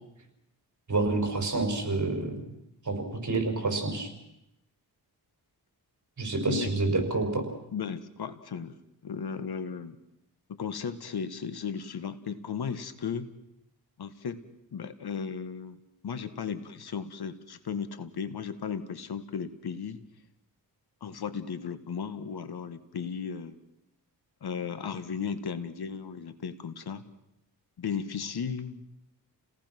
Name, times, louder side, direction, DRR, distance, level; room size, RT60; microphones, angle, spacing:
voice 1, 0.9-2.4 2.8-4.1 6.2-7.4, right 3 dB, 45° right, 4 dB, 5.7 m, -28 dB
voice 2, 7.7-8.7 9.0-10.0 10.5-13.3 14.0-14.4 14.7-15.8 16.0-20.0 21.0-23.6 24.4-27.0 27.8-28.8, left 6 dB, 70° left, 11 dB, 1.7 m, -35 dB
30.0 x 18.0 x 6.1 m, 0.86 s
cardioid pair, 90°, 40 cm